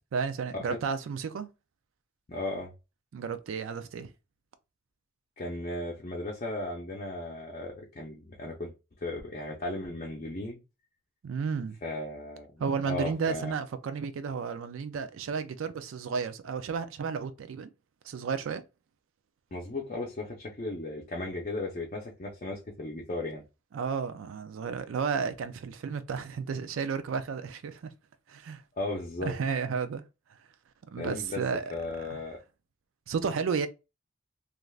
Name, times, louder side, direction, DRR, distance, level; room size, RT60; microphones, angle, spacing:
voice 1, 0.1-1.5 3.1-4.1 11.2-11.8 12.6-17.7 18.0-18.6 23.7-27.8 28.3-28.6 29.2-30.0 30.9-31.7 32.0-32.2 33.1-33.7, right 6 dB, 85° right, 0.4 m, -32 dB
voice 2, 2.3-2.7 5.4-8.7 9.0-10.6 11.8-13.5 19.5-23.4 28.8-29.3 31.0-31.4 31.7-32.4, left 2 dB, 40° left, 0.5 m, -36 dB
3.2 x 2.5 x 2.3 m
head